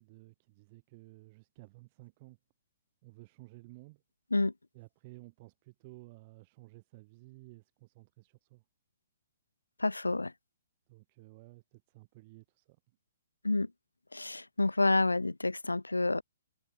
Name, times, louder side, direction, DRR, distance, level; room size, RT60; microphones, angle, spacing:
voice 1, 0.0-2.4 3.0-4.0 4.7-8.6 10.9-12.8, right 23 dB, 40° right, 7.6 m, -54 dB
voice 2, 9.8-10.3 13.4-13.7 14.1-16.2, left 2 dB, 90° left, 0.5 m, -28 dB
figure-of-eight pair, 125°, 0 cm